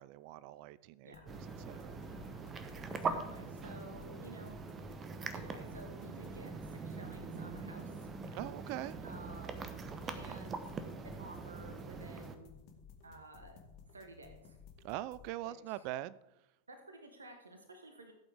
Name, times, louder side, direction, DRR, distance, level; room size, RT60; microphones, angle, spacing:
voice 1, 0.0-2.0 8.3-9.0 14.8-16.2, right 15 dB, 45° right, 0.3 m, -43 dB
sound 1, 1.1-15.3, left 6 dB, 40° left, 1.8 m, -57 dB
sound 2, 1.3-12.4, right 4 dB, 20° right, 1.1 m, -43 dB
voice 2, 2.9-4.6 5.3-8.1 9.0-9.8 10.0-10.8 11.0-12.5 13.0-13.6 13.9-14.6 15.4-15.8 16.7-18.1, right 2 dB, 75° right, 1.4 m, -53 dB
15.5 x 8.6 x 3.5 m
figure-of-eight pair, 90°, 0 cm